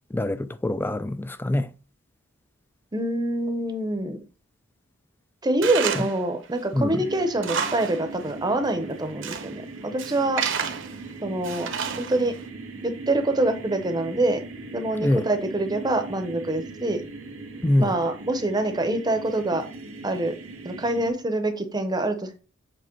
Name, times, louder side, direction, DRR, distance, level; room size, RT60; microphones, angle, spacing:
voice 1, 0.1-1.7 6.0-6.1 6.7-7.1 15.0-15.2 17.6-17.9, left 1 dB, 10° left, 0.3 m, -24 dB
voice 2, 2.9-4.2 5.4-10.4 11.2-11.7 12.0-12.3 12.8-14.4 14.7-17.0 17.8-19.6 20.0-20.3 20.6-22.4, right 2 dB, 20° right, 0.7 m, -25 dB
Tools, 5.6-6.2 6.6-6.7 7.2-8.0 8.3-8.4 9.0-9.5 10.0-11.0 11.4-12.3, right 7 dB, 60° right, 0.9 m, -30 dB
sound 1, 6.9-21.1, right 3 dB, 85° right, 1.7 m, -40 dB
7.7 x 3.1 x 4.5 m
head